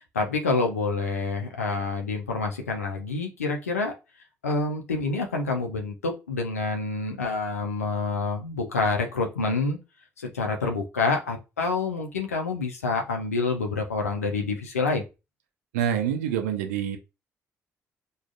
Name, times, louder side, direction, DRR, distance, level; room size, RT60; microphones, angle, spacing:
voice 1, 0.1-3.9 4.4-9.8 10.2-15.0, left 3 dB, 85° left, 0.6 m, -27 dB
voice 2, 15.7-17.0, right 9 dB, 80° right, 0.5 m, -26 dB
4.6 x 2.4 x 2.4 m
figure-of-eight pair, 40°, 8 cm